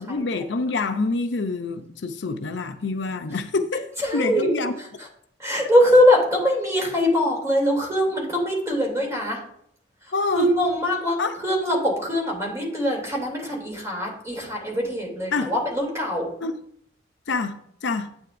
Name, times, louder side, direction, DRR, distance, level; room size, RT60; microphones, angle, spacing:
voice 1, 0.0-4.7 10.1-10.5 11.2-11.4 15.3-15.5 16.4-16.5 17.3-18.1, left 3 dB, 70° left, 0.6 m, -26 dB
voice 2, 4.0-4.5 5.4-9.4 10.0-16.3, equal, 15° right, 2.9 m, -22 dB
10.5 x 8.3 x 2.6 m
head